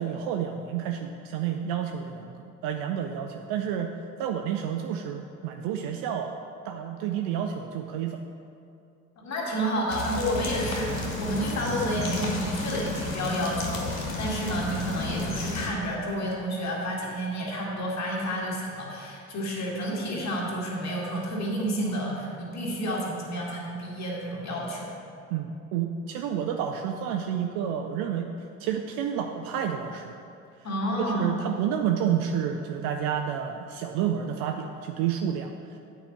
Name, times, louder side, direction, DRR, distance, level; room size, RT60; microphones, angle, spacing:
voice 1, 0.0-3.9 4.2-6.3 6.6-8.2 25.3-28.3 28.6-30.2 31.1-35.8, right 8 dB, 60° right, 5 dB, 0.5 m, -30 dB
voice 2, 9.2-24.9 30.6-31.4, equal, 40° left, -3 dB, 2.2 m, -30 dB
sound 1, 9.9-15.7, left 2 dB, 90° left, 1.0 m, -32 dB
9.1 x 4.9 x 5.8 m, 2.6 s
figure-of-eight pair, 50°, 40 cm